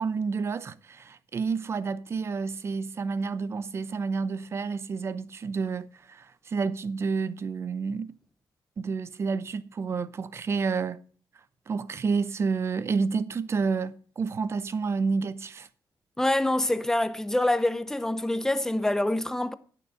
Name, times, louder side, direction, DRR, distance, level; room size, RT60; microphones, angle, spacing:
voice 1, 0.0-8.1 8.8-11.0 11.7-15.7, right 5 dB, 35° right, 0.6 m, -29 dB
voice 2, 16.2-19.5, left 1 dB, 5° left, 0.6 m, -26 dB
11.5 x 6.8 x 6.3 m
cardioid pair, 150°, 8 cm